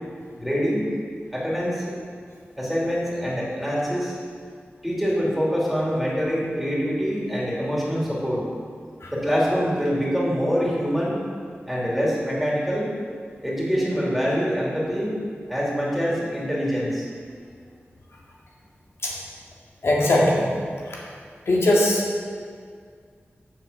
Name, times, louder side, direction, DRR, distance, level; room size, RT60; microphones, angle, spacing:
voice 1, 0.3-0.9 1.3-2.0 2.6-4.2 4.8-8.4 9.1-11.1 11.7-12.9 13.4-15.2 15.5-17.1, equal, ahead, -6 dB, 2.9 m, -25 dB
voice 2, 19.8-20.5 21.5-22.0, left 1 dB, 80° left, -4 dB, 2.0 m, -19 dB
7.6 x 7.0 x 6.8 m, 2.1 s
wide cardioid pair, 95°, 4 cm